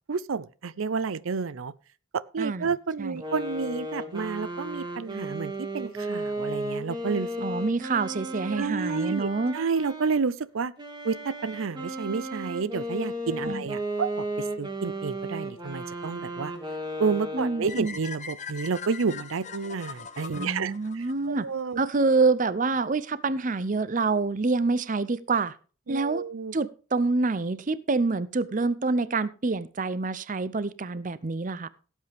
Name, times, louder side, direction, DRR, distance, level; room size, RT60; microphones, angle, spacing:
voice 1, 0.0-1.7 2.1-7.3 8.5-10.7 11.0-14.3 14.6-16.5 17.0-21.8 25.9-26.5, right 5 dB, 80° right, 0.5 m, -30 dB
voice 2, 2.4-2.7 3.0-3.2 7.4-9.6 13.5-13.6 17.3-18.0 20.3-21.5 21.8-25.6 25.9-26.2 26.5-31.7, right 3 dB, 40° right, 0.6 m, -27 dB
sound 1, 3.2-10.2 10.8-17.9, right 1 dB, 20° right, 2.2 m, -35 dB
sound 2, 17.7-21.8, left 6 dB, 35° left, 1.0 m, -41 dB
17.0 x 8.2 x 3.5 m
head